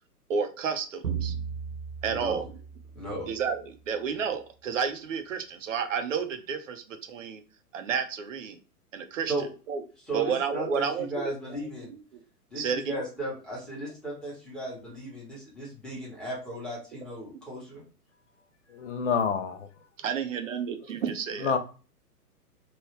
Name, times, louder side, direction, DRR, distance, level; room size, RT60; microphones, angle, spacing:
voice 1, 0.3-1.3 2.0-2.5 3.3-7.4 7.7-8.6 8.9-9.3 9.7-9.8 10.1-12.2 12.5-13.0 20.0-21.5, right 6 dB, 55° right, 0.7 m, -31 dB
sound 1, 1.0-3.8, right 7 dB, 75° right, 1.0 m, -36 dB
voice 2, 2.1-2.4 2.9-3.3 9.3-9.5 10.1-11.9 12.5-17.8, right 1 dB, ahead, 1.0 m, -36 dB
voice 3, 18.7-19.7 21.4-21.6, left 6 dB, 50° left, 0.6 m, -27 dB
3.1 x 2.3 x 3.1 m
figure-of-eight pair, 120°, 47 cm